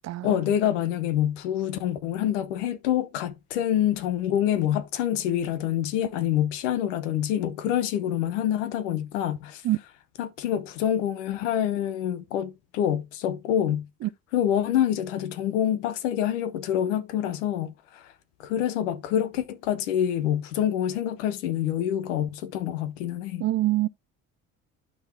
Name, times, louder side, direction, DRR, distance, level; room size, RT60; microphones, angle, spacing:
voice 1, 0.2-9.6 10.2-13.9 14.3-18.1 18.4-23.5, left 10 dB, 85° left, 1.0 m, -26 dB
voice 2, 23.4-23.9, right 16 dB, 45° right, 0.5 m, -24 dB
11.5 x 3.9 x 3.4 m
hypercardioid pair, 65°, 36 cm